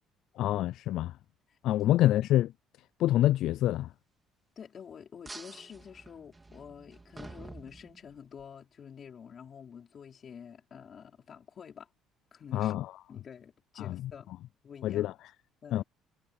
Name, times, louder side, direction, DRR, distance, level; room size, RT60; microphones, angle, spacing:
voice 1, 0.4-1.2 1.6-2.5 3.0-3.9 12.5-13.0 13.8-14.1 14.8-15.3 15.7-15.8, left 14 dB, 65° left, 0.3 m, -27 dB
voice 2, 4.6-11.9 12.3-12.7 13.1-14.3 14.6-15.1 15.6-15.8, left 7 dB, 35° left, 4.9 m, -48 dB
sound 1, 5.2-8.4, right 3 dB, 15° right, 3.1 m, -49 dB
cardioid pair, 140°, 0 cm